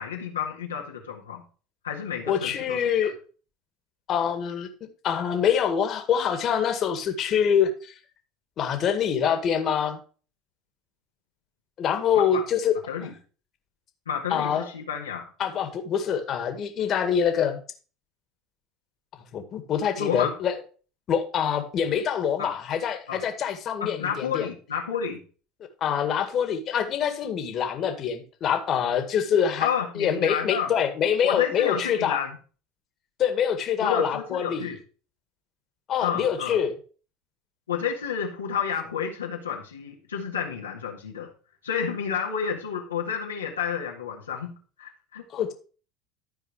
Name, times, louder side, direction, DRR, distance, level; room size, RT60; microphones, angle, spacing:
voice 1, 0.0-1.4 1.8-3.1 12.1-12.4 12.9-13.1 14.0-15.3 20.0-20.3 22.4-22.5 23.1-23.2 23.8-25.2 29.6-30.7 31.2-32.4 33.8-34.8 36.0-36.6 37.7-41.3 41.6-45.2, left 7 dB, 90° left, 0 dB, 1.7 m, -30 dB
voice 2, 2.3-3.1 4.1-4.7 5.0-7.9 8.6-10.0 11.8-12.7 14.3-14.7 15.4-17.6 19.3-20.5 21.1-24.5 25.8-29.7 30.0-32.2 33.2-34.7 35.9-36.7 45.3-45.5, left 8 dB, 45° left, 7 dB, 1.9 m, -25 dB
13.0 x 4.8 x 4.8 m, 0.38 s
hypercardioid pair, 75°, 0 cm